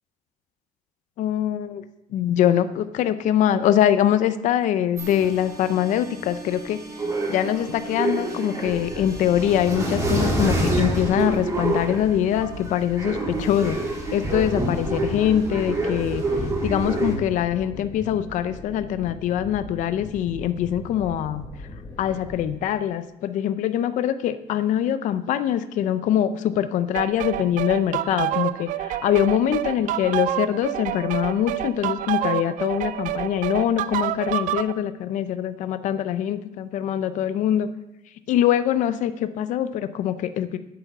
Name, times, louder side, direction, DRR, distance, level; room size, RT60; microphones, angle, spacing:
voice 1, 1.2-1.8 2.1-6.8 7.3-13.8 14.1-16.2 16.6-21.4 22.0-37.7 38.3-40.6, left 10 dB, 60° left, 11 dB, 0.5 m, -23 dB
sound 1, 5.0-17.2, right 2 dB, 20° right, 2.1 m, -27 dB
sound 2, 8.6-22.5, left 2 dB, 25° left, 1.2 m, -40 dB
sound 3, 26.9-34.7, right 13 dB, 65° right, 0.4 m, -28 dB
8.9 x 7.0 x 8.2 m, 0.93 s
cardioid pair, 175°, 15 cm